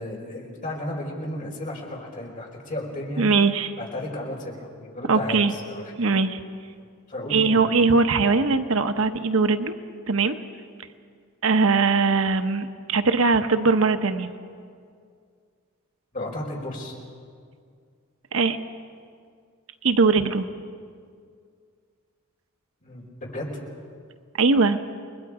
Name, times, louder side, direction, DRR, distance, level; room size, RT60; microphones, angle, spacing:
voice 1, 0.0-3.3 3.8-6.1 7.1-7.6 16.1-16.9 22.8-23.5, left 1 dB, 40° left, -2 dB, 4.6 m, -33 dB
voice 2, 3.2-3.7 5.1-5.5 6.0-6.4 7.3-9.8 10.1-10.4 11.4-14.3 18.3-18.6 19.8-20.5 24.4-24.8, right 4 dB, 65° right, 8 dB, 0.9 m, -20 dB
30.0 x 21.0 x 4.9 m, 2.2 s
head